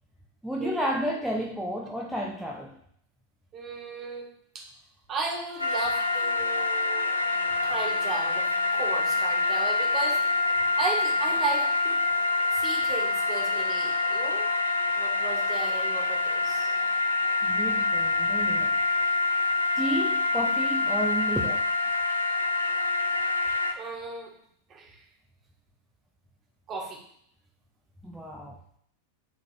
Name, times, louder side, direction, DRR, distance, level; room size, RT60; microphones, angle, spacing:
voice 1, 0.4-2.8 17.4-18.8 19.8-21.7 28.0-28.6, equal, ahead, -1 dB, 0.7 m, -31 dB
voice 2, 3.5-4.3 4.5-4.7 5.1-7.1 7.6-8.5 8.7-10.2 10.8-12.0 12.5-14.5 15.0-16.7 23.8-24.3 24.7-25.0 26.7-27.0, right 4 dB, 30° right, -1 dB, 1.9 m, -35 dB
sound 1, 5.6-23.7, left 3 dB, 85° left, 0.7 m, -26 dB
9.8 x 3.8 x 3.5 m, 0.66 s
figure-of-eight pair, 90°, 0 cm